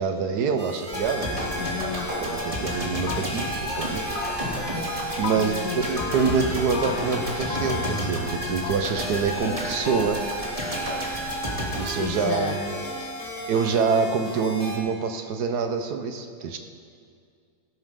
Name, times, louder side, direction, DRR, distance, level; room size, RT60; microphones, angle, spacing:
voice 1, 0.0-1.7 2.2-4.7 5.2-10.2 11.7-12.8 13.5-16.6, right 5 dB, 75° right, 6 dB, 1.4 m, -26 dB
sound 1, 0.6-14.8, equal, 5° left, 2.9 m, -35 dB
sound 2, 0.9-12.9 13.3-13.4, equal, 20° right, 2.6 m, -31 dB
voice 2, 1.6-2.1 5.4-5.8 12.0-13.1, left 7 dB, 85° left, 3 dB, 1.3 m, -33 dB
sound 3, 2.1-2.8 3.1-3.5 3.8-5.5 6.0-6.5 6.7-7.2 7.5-8.3 8.6-8.7, left 8 dB, 65° left, 1.0 m, -36 dB
18.5 x 13.0 x 3.7 m, 2.2 s
omnidirectional pair, 1.7 m